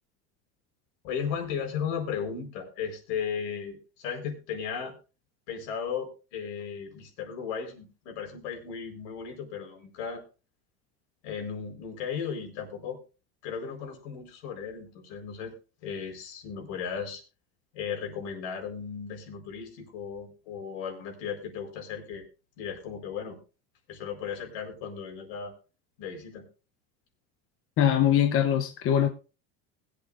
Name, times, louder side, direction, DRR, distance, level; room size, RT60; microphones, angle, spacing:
voice 1, 1.0-4.9 5.5-10.2 11.2-13.0 13.4-15.5 15.8-17.2 17.7-22.2 22.6-23.4 23.9-25.5 26.0-26.4, left 7 dB, 75° left, 4.7 m, -35 dB
voice 2, 27.8-29.1, left 10 dB, 40° left, 1.0 m, -22 dB
21.0 x 8.7 x 2.6 m
supercardioid pair, 135°, 34 cm